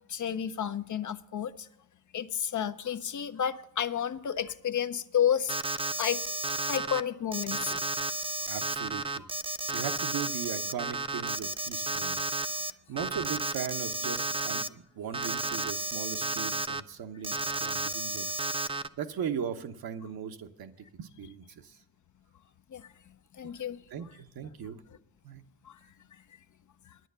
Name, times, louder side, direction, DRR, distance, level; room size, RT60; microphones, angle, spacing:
voice 1, 0.1-1.7 2.1-6.2 6.7-7.8 9.2-9.3 22.7-22.9 23.3-23.8 25.6-25.8 26.9-27.0, left 9 dB, 45° left, 0.7 m, -31 dB
Alarm, 5.5-7.0 7.3-12.7 13.0-14.7 15.1-16.8 17.2-18.9, right 2 dB, 15° right, 0.5 m, -32 dB
voice 2, 8.5-12.4 12.7-21.8 23.9-24.8 25.2-25.4, right 8 dB, 55° right, 1.0 m, -39 dB
10.0 x 9.3 x 6.7 m
supercardioid pair, 55°, 43 cm